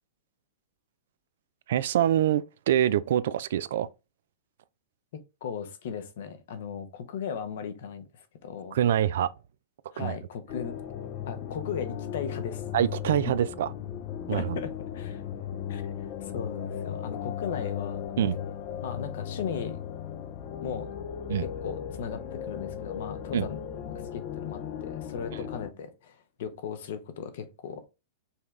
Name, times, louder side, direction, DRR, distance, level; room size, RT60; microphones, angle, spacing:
voice 1, 1.7-3.9 8.7-9.3 10.0-10.1 12.7-13.7 14.3-14.6 18.2-18.4 21.3-21.5 23.3-23.5, right 11 dB, 70° right, 0.3 m, -25 dB
voice 2, 5.4-8.8 9.9-10.8 11.3-12.6 14.3-15.2 15.7-15.9 16.2-18.1 18.8-19.8 20.6-20.9 21.4-27.9, left 7 dB, 65° left, 0.8 m, -37 dB
sound 1, 10.5-25.7, left 9 dB, 40° left, 0.5 m, -36 dB
5.4 x 2.3 x 3.2 m
hypercardioid pair, 120°, 0 cm